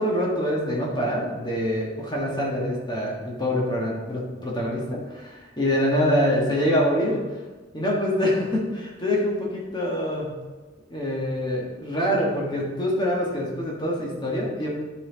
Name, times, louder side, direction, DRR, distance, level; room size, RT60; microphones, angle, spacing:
voice 1, 0.0-7.2 7.7-10.4 10.9-14.7, equal, 25° left, -4 dB, 1.4 m, -25 dB
11.0 x 4.3 x 3.9 m, 1.3 s
head